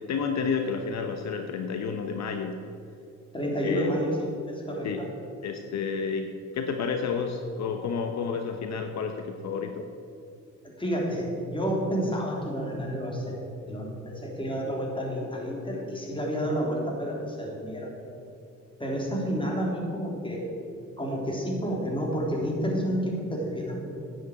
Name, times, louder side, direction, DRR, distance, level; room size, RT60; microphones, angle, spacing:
voice 1, 0.0-2.6 3.6-4.0 4.8-5.0 5.4-9.9, left 5 dB, 60° left, 5 dB, 1.0 m, -30 dB
voice 2, 3.3-5.1 10.6-13.4 13.7-17.9 18.8-20.5 21.0-23.8, equal, 15° left, -2 dB, 3.5 m, -30 dB
10.5 x 8.2 x 8.5 m, 2.5 s
cardioid pair, 90°, 30 cm